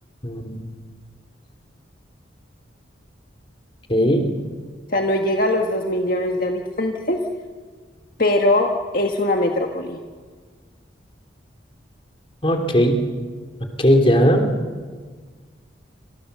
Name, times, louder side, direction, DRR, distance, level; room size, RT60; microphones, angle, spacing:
voice 1, 0.2-0.6 3.9-4.3 12.4-13.0 13.8-14.5, equal, 30° left, 3 dB, 3.2 m, -17 dB
voice 2, 4.9-7.2 8.2-10.0, left 1 dB, 50° left, 2 dB, 1.7 m, -21 dB
27.5 x 26.5 x 6.9 m, 1.5 s
head